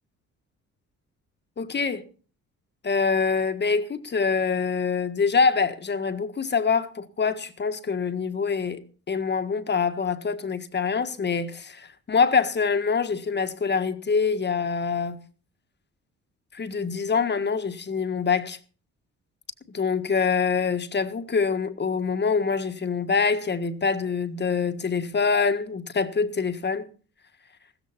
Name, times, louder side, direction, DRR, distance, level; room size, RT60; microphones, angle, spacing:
voice 1, 1.6-2.0 2.8-15.2 16.5-18.6 19.7-26.9, left 5 dB, 35° left, 1.6 m, -25 dB
15.5 x 14.0 x 4.3 m
cardioid pair, 90°, 30 cm